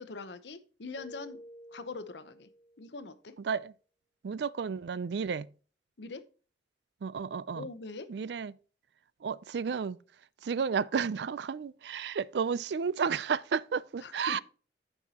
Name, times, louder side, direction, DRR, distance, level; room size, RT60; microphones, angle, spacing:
voice 1, 0.0-1.4 1.7-2.5 2.8-3.3 6.0-6.3 7.5-8.1 14.0-14.4, left 3 dB, 80° left, 0.8 m, -43 dB
Keyboard (musical), 1.0-3.0, equal, 30° left, 0.8 m, -51 dB
voice 2, 4.2-5.5 7.0-7.7 8.1-8.5 9.2-10.0 10.4-14.4, right 6 dB, 70° right, 0.4 m, -32 dB
14.0 x 5.5 x 2.9 m
head